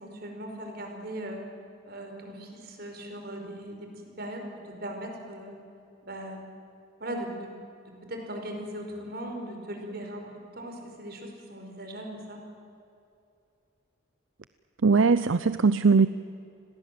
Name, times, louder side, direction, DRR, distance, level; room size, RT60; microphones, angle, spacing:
voice 1, 0.0-1.4 1.8-5.6 6.0-6.4 7.0-7.5 7.8-10.3 10.6-12.4, right 1 dB, 45° right, 3 dB, 4.9 m, -39 dB
voice 2, 14.8-16.1, right 4 dB, 70° right, 14 dB, 0.6 m, -20 dB
30.0 x 21.5 x 7.7 m, 2.7 s
head